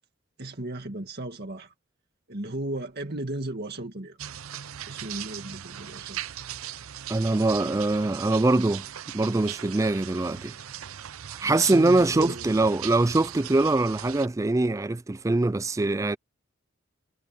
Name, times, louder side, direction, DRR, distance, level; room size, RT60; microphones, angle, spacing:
voice 1, 0.4-1.7 2.3-4.2 4.9-6.2 11.4-12.5, right 1 dB, 50° right, 2.1 m, -35 dB
sound 1, 4.2-14.3, right 10 dB, 75° right, 0.7 m, -39 dB
voice 2, 7.1-8.9 9.1-10.5 11.4-16.2, right 2 dB, 15° right, 0.3 m, -23 dB
head